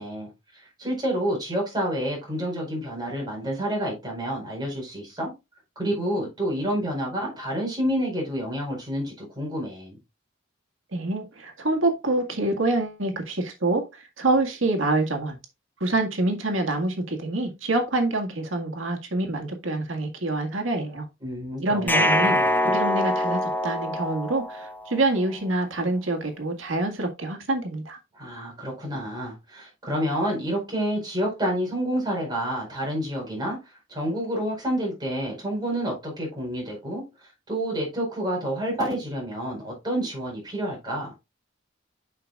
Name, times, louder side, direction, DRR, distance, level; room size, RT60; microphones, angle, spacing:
voice 1, 0.0-5.3 5.7-10.0 21.2-22.5 28.1-41.1, equal, 20° right, 4.8 m, -29 dB
voice 2, 10.9-15.4 15.8-21.1 21.6-28.0, right 2 dB, 85° right, 1.8 m, -26 dB
sound 1, 21.9-25.0, left 1 dB, 10° left, 0.6 m, -24 dB
8.7 x 6.0 x 2.4 m
head